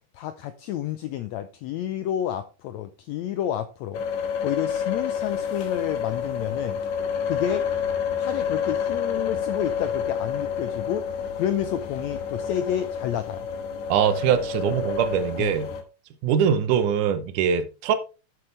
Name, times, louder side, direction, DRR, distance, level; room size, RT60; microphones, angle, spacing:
voice 1, 0.1-4.0 4.4-6.8 7.3-7.7 8.2-13.5 15.4-15.5, left 11 dB, 90° left, 1.6 m, -30 dB
sound 1, 3.9-15.8, left 7 dB, 65° left, 2.5 m, -29 dB
voice 2, 13.9-15.7 16.2-17.9, right 8 dB, 75° right, 2.3 m, -22 dB
9.8 x 7.9 x 3.2 m
omnidirectional pair, 3.8 m